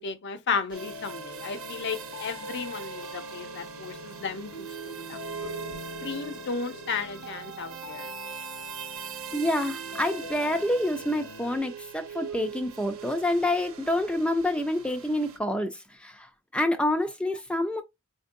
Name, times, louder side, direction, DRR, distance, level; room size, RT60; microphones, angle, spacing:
voice 1, 0.0-5.4 6.0-8.1, left 5 dB, 55° left, 0.5 m, -34 dB
sound 1, 0.7-11.6, left 1 dB, 85° left, 1.1 m, -43 dB
sound 2, 0.7-15.4, right 7 dB, 75° right, 0.6 m, -42 dB
voice 2, 9.3-17.8, left 1 dB, 5° left, 0.3 m, -27 dB
4.4 x 2.6 x 2.5 m
head